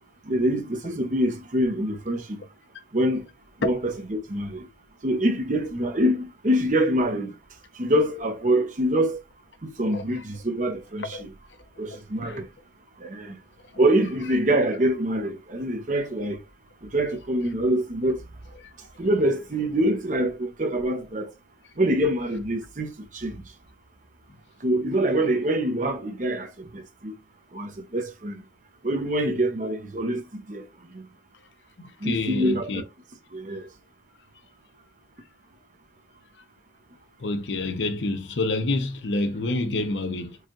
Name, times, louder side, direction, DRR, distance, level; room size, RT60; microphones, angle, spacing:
voice 1, 0.3-2.4 2.9-3.2 3.6-4.7 5.0-7.3 7.8-9.2 9.6-11.3 11.8-12.5 13.0-13.3 13.8-16.4 16.9-18.2 19.0-21.3 21.8-22.9 23.1-23.4 24.6-27.1 27.5-28.4 28.8-30.6 30.9-31.0 32.0-32.9 33.3-33.7, right 1 dB, 45° right, 0.8 m, -25 dB
voice 2, 11.9-12.4 18.6-18.7 31.8-32.8 37.2-40.4, left 2 dB, 85° left, 0.7 m, -28 dB
4.7 x 2.4 x 2.9 m
head